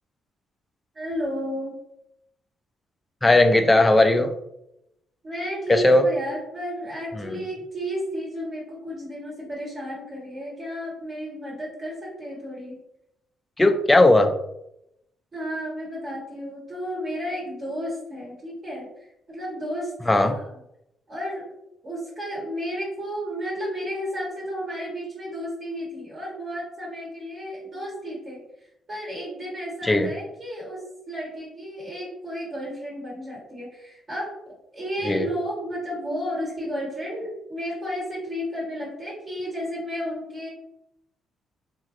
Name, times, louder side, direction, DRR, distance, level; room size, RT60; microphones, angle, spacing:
voice 1, 0.9-1.7 5.2-12.8 15.3-20.4 21.1-21.4 21.8-28.4 28.9-40.5, equal, 40° right, -5 dB, 1.2 m, -32 dB
voice 2, 3.2-4.3 5.7-6.1 7.2-7.4 13.6-14.4 20.1-20.4 29.8-30.1 35.0-35.3, left 2 dB, 15° left, 7 dB, 0.4 m, -17 dB
3.1 x 2.6 x 2.4 m, 0.81 s
cardioid pair, 90°, 0 cm